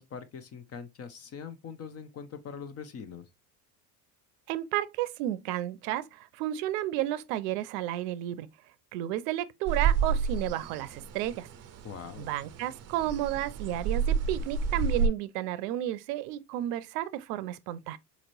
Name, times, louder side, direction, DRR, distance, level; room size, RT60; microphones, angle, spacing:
voice 1, 0.0-3.3 11.8-12.3, left 6 dB, 30° left, 0.7 m, -42 dB
voice 2, 4.5-8.5 8.9-11.5 12.2-18.0, right 13 dB, 75° right, 0.6 m, -32 dB
sound 1, 9.7-15.1, right 6 dB, 30° right, 0.6 m, -30 dB
4.2 x 2.9 x 2.6 m
supercardioid pair, 95°, 48 cm